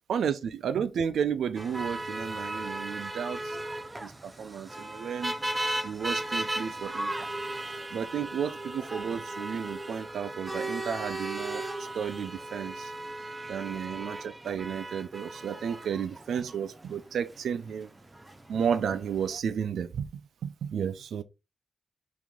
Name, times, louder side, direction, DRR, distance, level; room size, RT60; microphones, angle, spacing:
voice 1, 0.1-3.6 4.0-5.3 5.8-7.1 7.9-12.9 13.5-17.9 18.5-20.1 20.4-21.2, right 7 dB, 85° right, 0.3 m, -32 dB
sound 1, 1.6-19.4, right 1 dB, 25° right, 0.6 m, -36 dB
3.1 x 2.5 x 3.5 m
cardioid pair, 50°, 0 cm